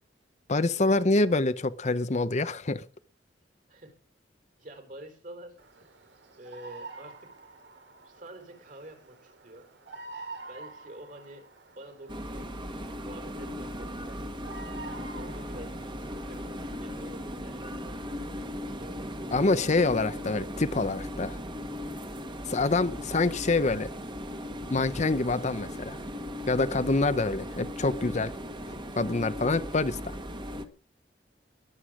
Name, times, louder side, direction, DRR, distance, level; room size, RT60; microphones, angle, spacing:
voice 1, 0.5-2.8 19.3-21.4 22.5-23.9 24.7-26.0 26.5-28.3 29.0-30.2, left 3 dB, 40° left, 0.8 m, -26 dB
voice 2, 4.6-5.6 6.3-7.4 8.0-9.7 10.5-14.2 15.1-15.8 16.2-18.1 18.3-19.1, right 1 dB, 50° right, 4.1 m, -48 dB
Bird vocalization bird call bird song, 5.6-17.4, right 3 dB, 80° right, 3.1 m, -48 dB
sound 1, 12.1-30.6, equal, 25° right, 1.6 m, -38 dB
21.5 x 8.1 x 5.0 m
head